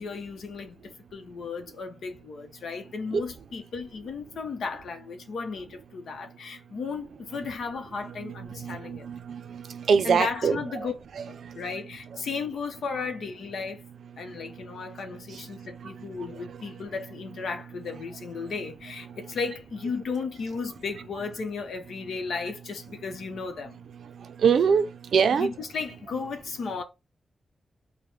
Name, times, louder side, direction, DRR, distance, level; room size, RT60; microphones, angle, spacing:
voice 1, 0.0-9.1 10.0-10.9 11.3-13.8 14.2-23.8 25.3-26.8, left 5 dB, 80° left, 0.8 m, -35 dB
voice 2, 8.2-10.9 11.2-11.6 15.3-16.6 24.4-25.5, right 6 dB, 75° right, 0.5 m, -26 dB
4.9 x 2.2 x 3.2 m
wide cardioid pair, 125°, 0 cm